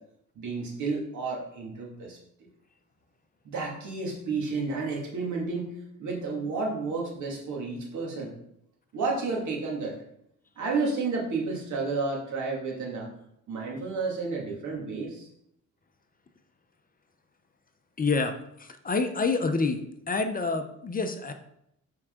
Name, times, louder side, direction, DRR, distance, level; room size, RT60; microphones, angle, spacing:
voice 1, 0.4-2.2 3.4-8.3 8.9-10.0 10.6-13.1 13.5-15.3, right 4 dB, 75° right, -1 dB, 2.3 m, -31 dB
voice 2, 18.0-18.3 18.6-21.3, left 4 dB, 30° left, 7 dB, 0.8 m, -27 dB
7.5 x 4.7 x 3.8 m, 0.76 s
cardioid pair, 90°, 30 cm